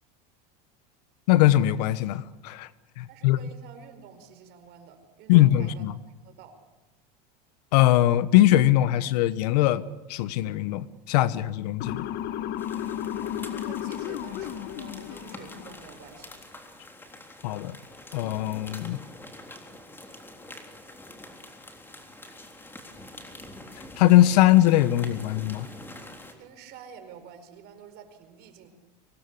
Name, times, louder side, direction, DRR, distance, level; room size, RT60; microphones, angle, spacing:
voice 1, 1.3-2.7 3.0-3.4 5.3-5.9 7.7-12.1 17.4-17.8 18.1-19.0 24.0-25.7, left 14 dB, 75° left, 16 dB, 1.3 m, -21 dB
voice 2, 3.1-5.9 6.2-6.6 13.2-16.3 26.4-28.7, right 7 dB, 55° right, 7 dB, 4.9 m, -48 dB
Motor vehicle (road) / Siren, 11.8-15.9, left 11 dB, 55° left, 1.5 m, -33 dB
sound 1, 12.6-26.3, left 1 dB, 10° left, 3.6 m, -46 dB
25.0 x 19.0 x 8.4 m, 1.1 s
supercardioid pair, 125°, 21 cm